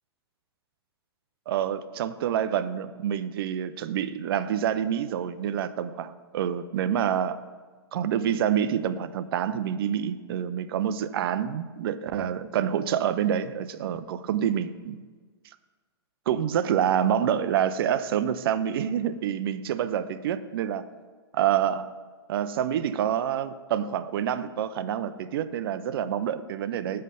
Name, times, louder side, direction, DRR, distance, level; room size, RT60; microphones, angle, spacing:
voice 1, 1.5-7.4 7.9-15.0 16.3-20.9 21.3-21.9 22.3-27.0, right 9 dB, 60° right, 14 dB, 0.4 m, -27 dB
8.9 x 3.3 x 5.6 m, 1.4 s
hypercardioid pair, 125°, 14 cm